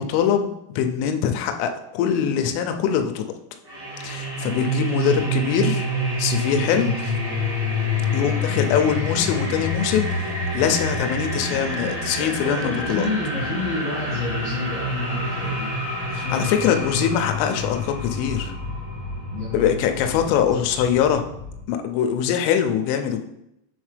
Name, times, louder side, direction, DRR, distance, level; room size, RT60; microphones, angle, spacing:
voice 1, 0.0-3.3 4.0-5.9 6.2-6.9 8.1-10.3 10.5-13.1 16.1-18.5 19.5-21.2 21.7-23.2, left 8 dB, 85° left, 5 dB, 3.0 m, -23 dB
sound 1, 3.7-21.6, left 1 dB, 85° right, 0.8 m, -28 dB
voice 2, 4.9-5.2 6.8-7.0 8.0-8.2 11.5-15.7 16.1-16.9 19.3-20.6, left 3 dB, 60° left, -8 dB, 1.7 m, -30 dB
8.0 x 3.8 x 3.3 m, 0.81 s
omnidirectional pair, 5.7 m